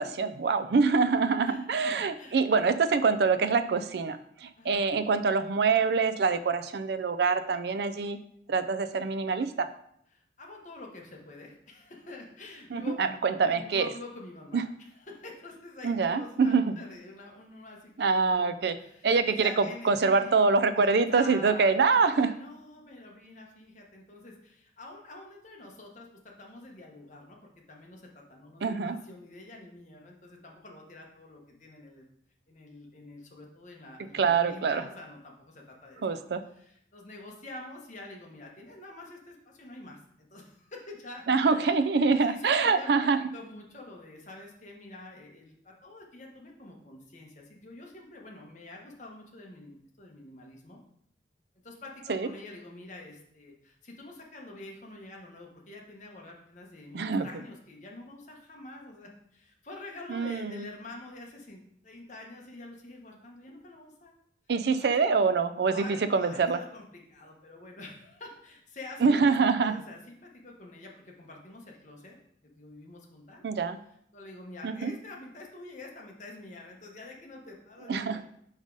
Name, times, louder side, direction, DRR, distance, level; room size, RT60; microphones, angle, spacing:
voice 1, 0.0-8.2 8.5-9.7 12.7-13.9 14.5-14.6 15.8-16.7 18.0-18.8 19.0-22.3 28.6-29.0 34.1-34.8 36.0-36.4 41.3-43.2 52.1-52.3 56.9-57.3 60.1-60.7 64.5-65.8 66.1-66.6 69.0-69.8 73.4-73.8 74.6-74.9 77.9-78.2, right 4 dB, 60° right, 11 dB, 0.4 m, -25 dB
voice 2, 1.4-2.4 4.6-4.9 10.1-20.4 20.8-32.1 32.5-36.2 36.5-50.8 51.6-64.1 64.8-65.0 65.6-72.2 72.4-73.4 74.1-78.3, left 2 dB, 40° left, 0 dB, 1.1 m, -47 dB
5.2 x 4.9 x 3.9 m, 0.70 s
head